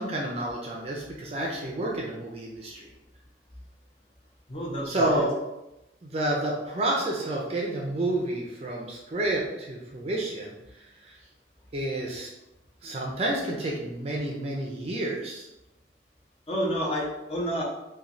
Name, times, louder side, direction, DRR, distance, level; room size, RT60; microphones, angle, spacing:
voice 1, 0.0-2.9 4.9-5.4 6.0-10.5 11.0-11.2 11.7-12.3 12.8-15.5, right 1 dB, 35° right, -2 dB, 0.4 m, -29 dB
voice 2, 4.5-5.2 16.5-17.6, equal, 35° left, -4 dB, 0.6 m, -29 dB
3.0 x 2.2 x 2.5 m, 0.94 s
head